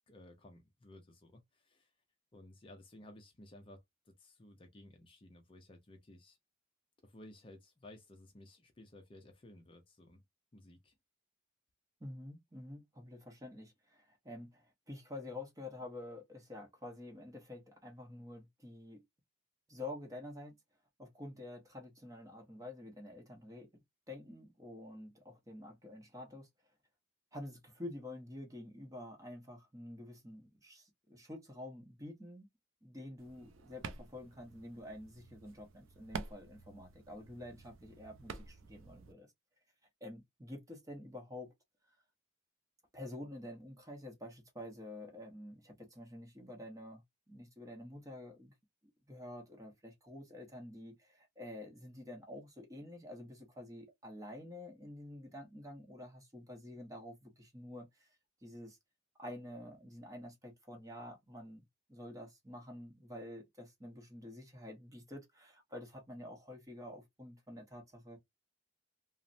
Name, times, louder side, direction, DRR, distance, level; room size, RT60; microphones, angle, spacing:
voice 1, 0.1-1.9 2.3-6.4 7.0-10.2 10.5-10.9, left 1 dB, 25° left, 0.5 m, -56 dB
voice 2, 12.0-19.0 19.7-20.6 21.0-23.8 24.1-26.5 27.3-32.5 32.8-39.3 40.0-41.5 42.9-47.0 47.3-48.5 49.1-58.8 59.2-61.6 61.9-68.2, left 1 dB, 15° right, 0.7 m, -48 dB
sound 1, 33.2-39.1, right 5 dB, 75° right, 0.4 m, -49 dB
3.1 x 2.0 x 2.5 m
head